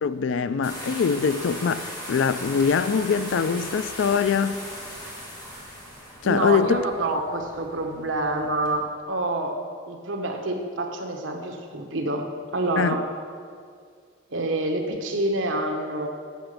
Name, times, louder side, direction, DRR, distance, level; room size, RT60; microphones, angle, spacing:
voice 1, 0.0-4.6 6.2-6.8 12.8-13.0, left 6 dB, 70° left, 0.4 m, -23 dB
sound 1, 0.6-8.7, equal, 20° left, 1.9 m, -38 dB
voice 2, 6.2-9.6 9.9-12.3 12.5-13.1 14.3-16.1, right 2 dB, 80° right, 1.1 m, -27 dB
8.0 x 5.9 x 6.5 m
head